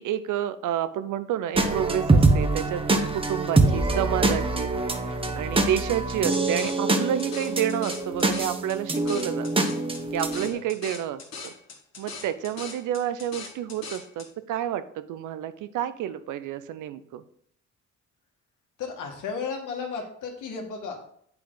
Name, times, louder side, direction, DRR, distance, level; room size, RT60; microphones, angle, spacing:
voice 1, 0.0-9.5 10.1-11.5 12.0-17.2, right 10 dB, 80° right, 13 dB, 0.6 m, -30 dB
sound 1, 1.6-10.5, right 2 dB, 20° right, 1.0 m, -24 dB
sound 2, 6.3-14.3, left 4 dB, 60° left, 1.6 m, -40 dB
voice 2, 18.8-21.0, left 5 dB, 85° left, 2 dB, 1.8 m, -34 dB
8.1 x 5.7 x 3.9 m, 0.66 s
cardioid pair, 90°, 30 cm